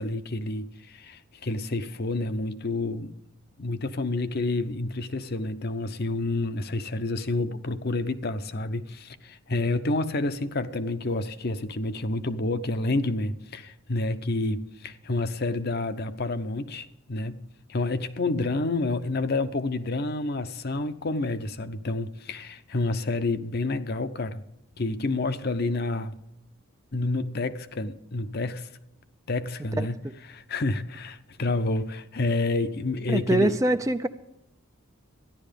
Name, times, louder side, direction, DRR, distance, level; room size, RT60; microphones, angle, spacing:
voice 1, 0.0-3.2 3.6-17.4 17.7-24.4 24.8-26.2 26.9-28.7 29.3-30.0 30.3-33.6, left 2 dB, 45° left, 0.7 m, -29 dB
voice 2, 33.1-34.1, right 2 dB, 15° right, 0.4 m, -23 dB
13.5 x 11.0 x 5.2 m
head